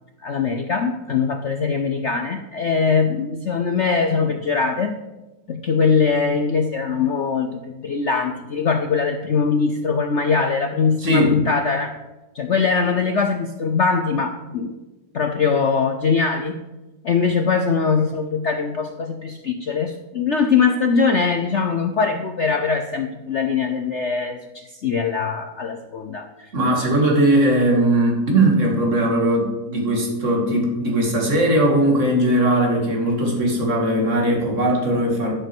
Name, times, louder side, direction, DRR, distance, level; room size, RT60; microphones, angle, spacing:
voice 1, 0.2-5.0 5.5-12.0 12.3-14.7 15.1-16.6 17.0-26.5, left 5 dB, 80° left, 6 dB, 0.6 m, -21 dB
voice 2, 11.0-11.4 26.5-35.3, right 1 dB, 40° right, 0 dB, 2.5 m, -19 dB
11.5 x 6.6 x 6.1 m, 1.1 s
omnidirectional pair, 2.1 m